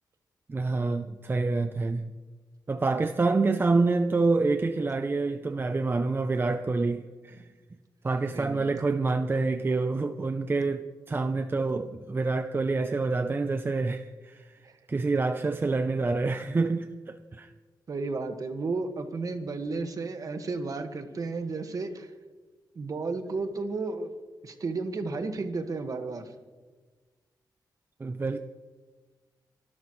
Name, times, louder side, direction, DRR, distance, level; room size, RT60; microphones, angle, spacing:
voice 1, 0.5-2.1 2.7-7.5 8.0-17.5 28.0-28.4, right 3 dB, 30° right, 0.6 m, -27 dB
voice 2, 8.3-8.7 14.6-14.8 17.9-22.1 22.7-24.1 24.4-26.2, right 3 dB, 50° right, 1.6 m, -33 dB
25.5 x 12.5 x 3.2 m
cardioid pair, 90°, 8 cm